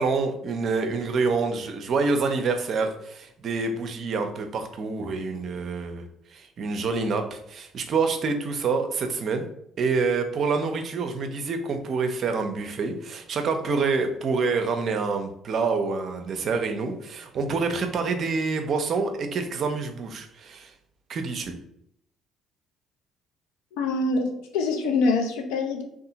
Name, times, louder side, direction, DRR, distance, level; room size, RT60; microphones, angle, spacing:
voice 1, 0.0-6.0 6.3-9.4 9.8-20.7 21.1-21.5, right 4 dB, 50° right, 6 dB, 0.4 m, -27 dB
voice 2, 23.7-25.8, left 3 dB, 70° left, 3 dB, 0.4 m, -25 dB
2.7 x 2.3 x 2.6 m, 0.73 s
figure-of-eight pair, 50°, 0 cm